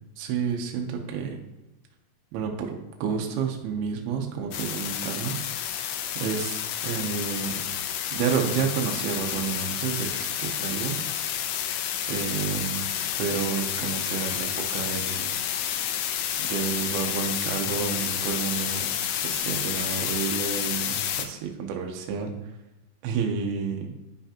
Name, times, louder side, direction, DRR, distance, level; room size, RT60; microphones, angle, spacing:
voice 1, 0.2-1.4 2.3-5.4 6.2-7.6 8.1-11.0 12.1-12.9 13.2-15.3 16.4-18.9 19.2-22.3 23.0-23.9, right 6 dB, 80° right, 2 dB, 2.8 m, -30 dB
sound 1, 4.5-21.3, left 10 dB, 85° left, 2.7 m, -30 dB
10.5 x 5.8 x 2.9 m, 1.0 s
omnidirectional pair, 4.6 m